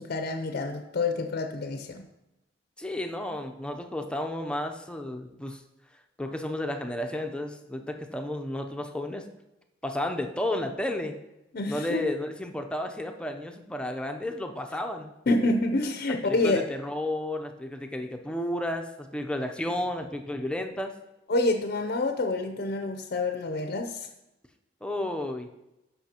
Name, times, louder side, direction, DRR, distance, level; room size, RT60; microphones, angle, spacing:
voice 1, 0.0-2.1 11.5-12.0 15.3-16.6 21.3-24.1, left 2 dB, 50° left, 6 dB, 0.6 m, -27 dB
voice 2, 2.8-5.6 6.2-9.3 9.8-11.2 11.7-15.1 16.2-20.9 24.8-25.5, left 1 dB, 5° left, 4 dB, 0.6 m, -32 dB
14.0 x 5.6 x 2.9 m, 0.95 s
head